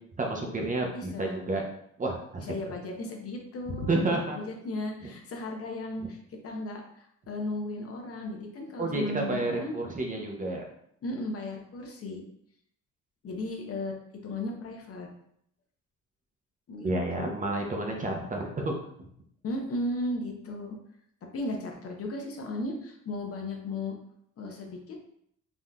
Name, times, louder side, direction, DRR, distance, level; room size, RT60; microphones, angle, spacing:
voice 1, 0.2-1.6 2.0-2.5 3.9-4.4 8.8-10.6 16.8-18.7, right 2 dB, 25° right, 1 dB, 0.6 m, -30 dB
voice 2, 0.9-1.4 2.4-9.8 11.0-12.2 13.2-13.9 14.2-15.1 16.7-17.3 19.4-20.8 21.2-24.0 24.4-25.0, left 2 dB, 50° left, 1 dB, 0.7 m, -35 dB
3.6 x 2.5 x 2.2 m, 0.70 s
cardioid pair, 90°, 30 cm